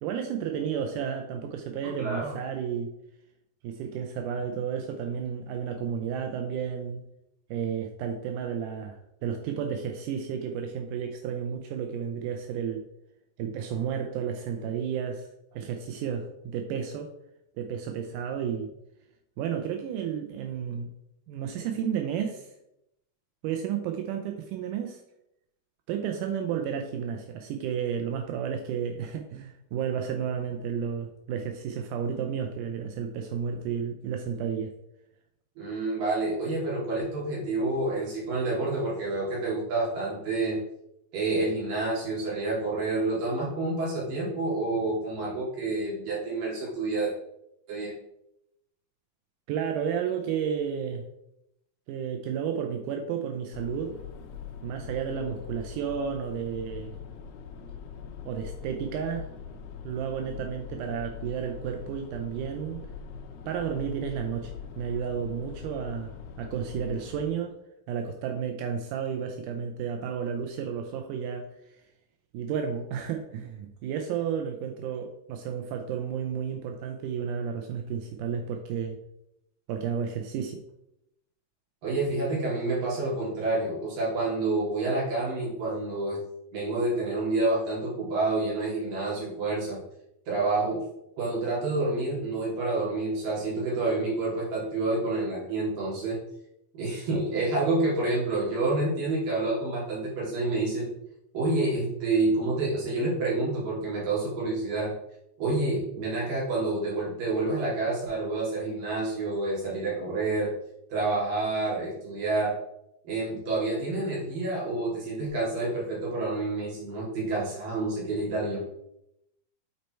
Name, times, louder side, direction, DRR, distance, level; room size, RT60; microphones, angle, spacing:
voice 1, 0.0-2.9 3.6-7.0 7.5-12.8 13.4-17.1 17.6-18.7 19.4-20.9 21.3-22.5 23.4-25.0 25.9-34.7 49.5-51.0 51.9-54.0 54.6-57.0 58.2-59.3 59.8-62.9 63.5-67.5 67.9-71.8 72.3-79.0 79.7-80.6, right 7 dB, 85° right, 4 dB, 1.8 m, -32 dB
voice 2, 2.0-2.3 35.6-40.6 41.1-47.1 47.7-47.9 81.8-86.2 86.5-89.8 90.3-90.8 91.2-96.2 96.7-100.9 101.3-104.9 105.4-110.5 110.9-112.5 113.0-118.6, right 2 dB, 65° right, -6 dB, 4.3 m, -28 dB
sound 1, 53.5-67.3, left 7 dB, 85° left, 2.6 m, -42 dB
8.4 x 4.4 x 4.4 m, 0.83 s
omnidirectional pair, 4.3 m